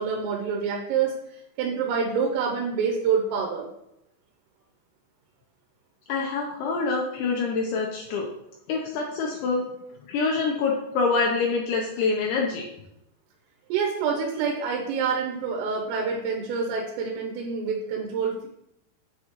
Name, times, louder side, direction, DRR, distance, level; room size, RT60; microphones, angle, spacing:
voice 1, 0.0-3.7 13.7-18.5, right 6 dB, 85° right, 0 dB, 3.4 m, -27 dB
voice 2, 6.1-8.3 8.7-9.7 10.1-12.7, left 4 dB, 80° left, -1 dB, 2.8 m, -26 dB
8.9 x 4.7 x 3.0 m, 0.81 s
omnidirectional pair, 5.8 m